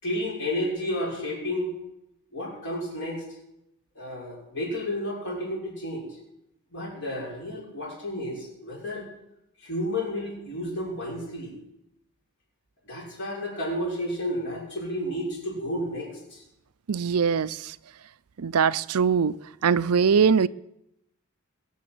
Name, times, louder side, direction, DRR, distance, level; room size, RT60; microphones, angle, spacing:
voice 1, 0.0-1.7 2.3-3.2 3.9-6.1 6.7-9.1 9.6-11.5 12.9-16.4, left 1 dB, 55° left, 6.1 m, -31 dB
voice 2, 16.9-17.7 18.4-19.4 19.6-20.5, right 6 dB, 85° right, 0.5 m, -22 dB
21.5 x 7.4 x 7.8 m
head